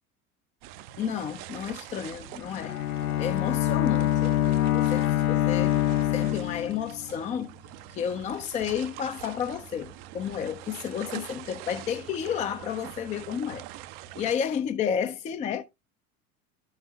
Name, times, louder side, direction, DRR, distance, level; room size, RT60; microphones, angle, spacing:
sound 1, 0.6-14.4, right 13 dB, 45° right, 0.5 m, -45 dB
voice 1, 1.0-2.8 3.2-4.3 4.7-5.8 6.1-7.5 7.9-13.6 14.2-15.6, left 8 dB, 15° left, 0.4 m, -31 dB
Bowed string instrument, 2.4-7.1, left 13 dB, 70° left, 0.6 m, -25 dB
13.0 x 6.4 x 2.2 m
figure-of-eight pair, 75°, 44 cm